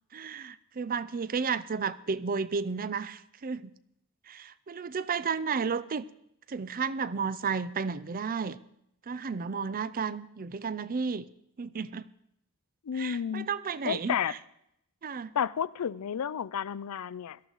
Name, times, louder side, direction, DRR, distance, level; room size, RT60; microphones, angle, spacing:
voice 1, 0.1-3.7 4.3-6.0 6.5-8.6 9.1-11.2 11.6-12.1 12.9-14.1 15.0-15.3, right 5 dB, 40° right, 17 dB, 0.5 m, -32 dB
voice 2, 12.8-13.5 13.8-14.3 15.3-17.4, left 8 dB, 75° left, 19 dB, 0.4 m, -31 dB
18.0 x 13.0 x 4.0 m, 0.77 s
head